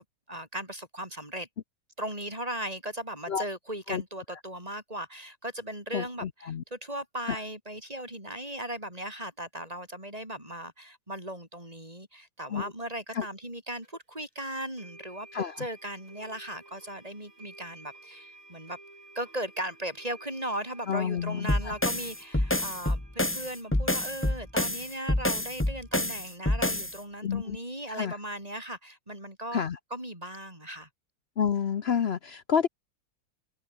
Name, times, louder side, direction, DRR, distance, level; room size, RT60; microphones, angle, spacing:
voice 1, 0.0-1.5 2.0-18.8 19.1-29.6 29.9-30.9, right 1 dB, 15° right, 8.0 m, -38 dB
voice 2, 5.9-6.6 7.3-7.4 12.5-12.7 13.1-13.2 15.3-15.7 20.9-21.7 27.2-27.6 27.9-28.2 29.5-29.8 31.4-32.7, left 7 dB, 80° left, 0.5 m, -29 dB
sound 1, 13.8-13.9 14.8-26.4, right 2 dB, 85° right, 8.4 m, -54 dB
sound 2, 21.5-27.0, left 1 dB, 5° left, 1.4 m, -28 dB
omnidirectional pair, 2.3 m